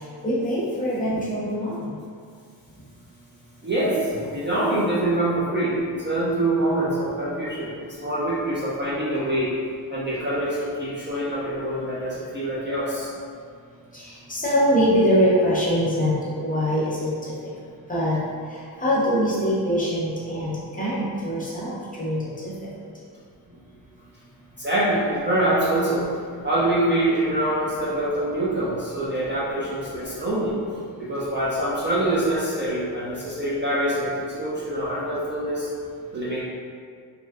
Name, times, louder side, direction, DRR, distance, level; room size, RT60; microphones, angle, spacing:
voice 1, 0.2-1.9 13.9-17.1 17.9-18.2 18.8-22.5, equal, 20° left, -8 dB, 0.6 m, -23 dB
voice 2, 3.6-9.5 9.9-13.1 23.5-23.6 24.6-26.1 26.4-30.6 31.0-35.7 36.1-36.4, right 1 dB, 30° right, -8 dB, 0.4 m, -25 dB
3.0 x 2.6 x 2.3 m, 2.2 s
wide cardioid pair, 150°, 40 cm